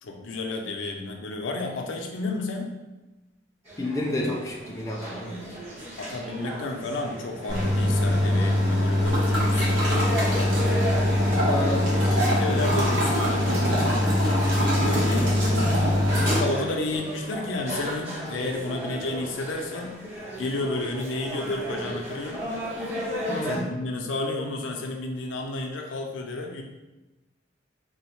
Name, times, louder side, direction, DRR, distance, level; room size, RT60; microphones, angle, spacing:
voice 1, 0.0-2.7 6.0-10.6 11.5-15.4 16.2-20.0 20.4-22.4 23.4-26.6, left 2 dB, 90° left, 2 dB, 0.5 m, -32 dB
sound 1, 3.6-23.6, equal, 35° right, 1.4 m, -36 dB
voice 2, 3.8-5.5 11.4-12.0 23.3-23.6, left 1 dB, 20° left, -1 dB, 0.4 m, -30 dB
sound 2, 7.5-16.4, left 1 dB, 65° right, 0.8 m, -22 dB
3.8 x 2.1 x 2.9 m, 1.1 s
head